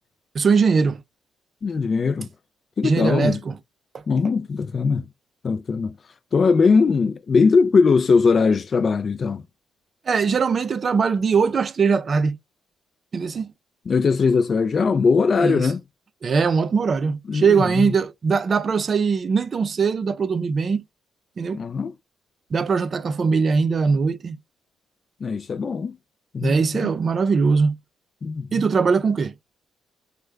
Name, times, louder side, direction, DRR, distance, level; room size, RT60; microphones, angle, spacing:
voice 1, 0.3-1.0 2.8-3.6 10.1-12.4 13.1-13.5 15.4-15.7 16.2-20.8 21.4-21.6 22.5-24.4 26.4-27.7 28.5-29.3, right 5 dB, 45° right, 0.4 m, -21 dB
voice 2, 1.6-2.3 2.8-3.4 4.1-5.0 5.4-5.9 6.3-9.4 13.9-15.8 17.3-17.9 21.5-21.9 25.2-26.0 26.3-26.9 28.2-28.7, left 5 dB, 45° left, 0.3 m, -20 dB
3.4 x 2.2 x 3.2 m
cardioid pair, 90°, 0 cm